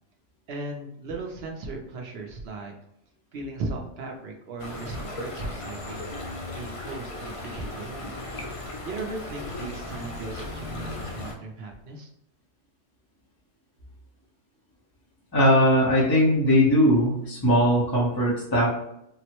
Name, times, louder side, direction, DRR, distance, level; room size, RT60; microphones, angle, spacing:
voice 1, 0.5-2.7 3.3-6.1 6.5-8.1 8.8-12.1, right 2 dB, 60° right, 1 dB, 0.8 m, -37 dB
sound 1, 4.6-11.3, left 2 dB, 60° left, 0.3 m, -36 dB
voice 2, 15.3-18.7, equal, 20° left, -7 dB, 0.8 m, -20 dB
3.8 x 2.0 x 2.9 m, 0.79 s
omnidirectional pair, 1.3 m